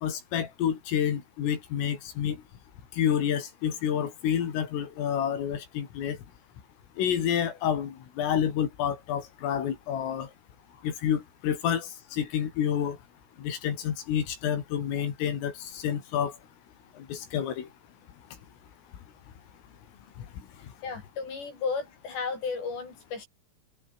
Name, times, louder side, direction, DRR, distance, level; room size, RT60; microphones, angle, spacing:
voice 1, 0.0-2.4 3.0-6.2 7.0-10.3 10.8-13.0 13.4-16.3 17.1-17.7 20.2-20.3, left 9 dB, 80° left, 5.9 m, -29 dB
voice 2, 20.8-23.3, left 5 dB, 55° left, 9.8 m, -34 dB
omnidirectional pair, 5.8 m